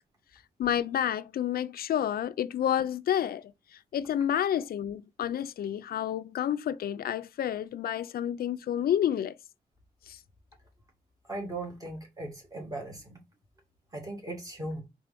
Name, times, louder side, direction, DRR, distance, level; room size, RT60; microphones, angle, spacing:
voice 1, 0.6-3.4 3.9-9.4 10.1-10.2, left 10 dB, 90° left, 0.5 m, -29 dB
voice 2, 11.2-13.2 13.9-14.8, right 2 dB, 25° right, 2.5 m, -38 dB
4.7 x 4.0 x 5.1 m
wide cardioid pair, 160°, 15 cm